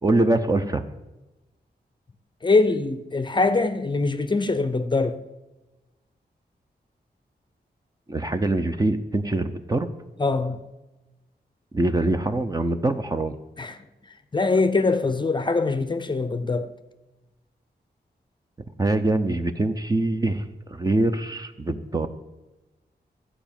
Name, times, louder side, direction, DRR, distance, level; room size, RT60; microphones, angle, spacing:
voice 1, 0.0-0.8 8.1-9.9 11.7-13.4 18.8-22.1, right 2 dB, 20° right, 8 dB, 0.6 m, -24 dB
voice 2, 2.4-5.2 10.2-10.6 13.6-13.8 14.3-16.7, left 3 dB, 25° left, 10 dB, 0.6 m, -23 dB
13.0 x 5.0 x 8.8 m, 1.1 s
wide cardioid pair, 175°, 17 cm